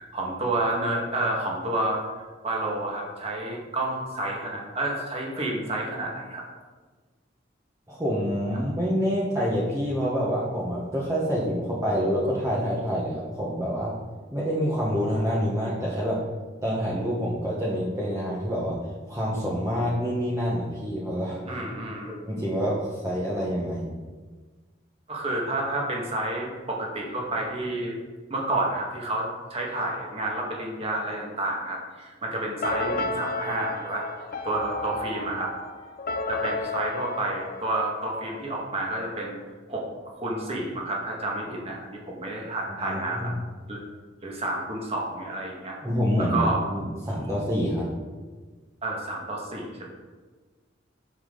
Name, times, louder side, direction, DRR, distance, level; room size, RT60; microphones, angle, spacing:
voice 1, 0.0-2.0 2.4-6.4 21.4-22.1 25.1-28.0 28.3-34.1 34.4-35.5 36.3-39.4 39.7-39.9 40.1-43.3 43.7-43.8 44.2-45.8 46.2-46.6 48.8-49.9, right 2 dB, 30° right, -2 dB, 1.9 m, -30 dB
voice 2, 7.9-13.9 14.3-16.2 16.6-21.6 22.1-23.9 42.8-43.4 45.8-46.4 46.7-47.9, equal, 15° right, -7 dB, 1.4 m, -27 dB
sound 1, 32.6-38.4, left 2 dB, 50° left, 0.7 m, -32 dB
9.9 x 7.3 x 4.0 m, 1.4 s
head